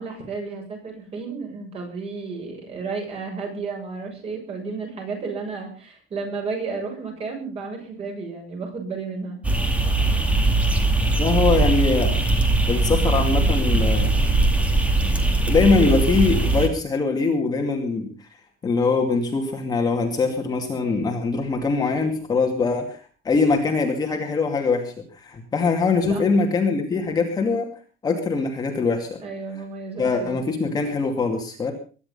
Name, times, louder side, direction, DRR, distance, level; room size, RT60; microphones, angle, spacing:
voice 1, 0.0-9.4 26.0-26.2 29.2-30.4, right 4 dB, 30° right, 2 dB, 7.2 m, -32 dB
sound 1, 9.4-16.7, right 2 dB, 5° right, 2.5 m, -20 dB
voice 2, 11.2-12.1 12.7-14.1 15.5-18.3 18.6-27.7 28.0-29.2 30.0-31.7, left 4 dB, 20° left, 2 dB, 2.5 m, -22 dB
22.0 x 11.0 x 5.6 m, 0.39 s
cardioid pair, 180°, 19 cm